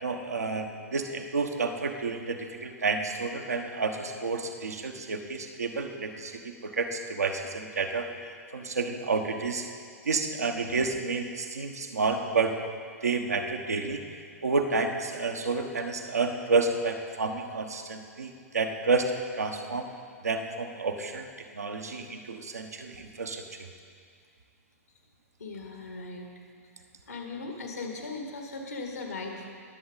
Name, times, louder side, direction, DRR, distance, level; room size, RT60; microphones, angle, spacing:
voice 1, 0.0-8.1 8.5-9.7 10.0-12.6 13.0-14.0 14.4-19.9 20.2-21.3 21.5-23.4, right 4 dB, 75° right, 4 dB, 1.2 m, -30 dB
voice 2, 25.4-26.2 27.1-29.5, left 3 dB, 75° left, 2 dB, 2.2 m, -38 dB
21.0 x 7.9 x 4.1 m, 2.1 s
figure-of-eight pair, 110°, 9 cm